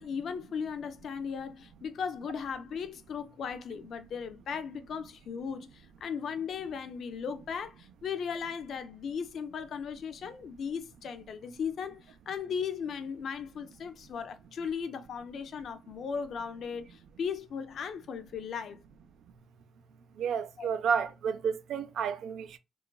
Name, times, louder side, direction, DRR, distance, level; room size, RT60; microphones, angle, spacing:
voice 1, 0.0-18.8 20.6-20.7, left 6 dB, 60° left, 0.4 m, -37 dB
voice 2, 20.1-22.6, right 7 dB, 80° right, 0.3 m, -31 dB
3.0 x 2.3 x 2.2 m
cardioid pair, 150°, 0 cm